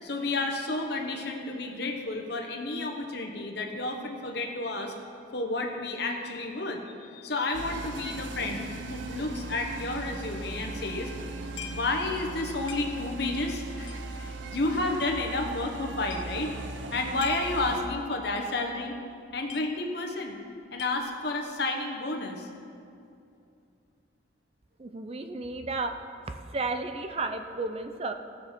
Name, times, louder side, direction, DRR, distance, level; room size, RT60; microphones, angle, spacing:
voice 1, 0.0-4.9 5.3-11.1 11.7-16.5 16.9-19.0 19.3-20.4 20.7-22.5, left 2 dB, 60° left, 2 dB, 1.1 m, -31 dB
sound 1, 7.5-17.9, right 2 dB, 75° right, 0.7 m, -38 dB
sound 2, 11.5-12.0 12.3-12.4 12.7-13.2 13.8-15.1 15.7-15.8 16.0-16.4 17.0-17.6 17.9-18.0 18.4-18.6 18.8-18.9 19.2-20.1 20.4-21.3, left 9 dB, 85° left, 0.9 m, -43 dB
voice 2, 24.8-25.9 26.3-28.1, right 3 dB, 30° right, 7 dB, 0.5 m, -33 dB
17.0 x 6.3 x 4.4 m, 2.6 s
head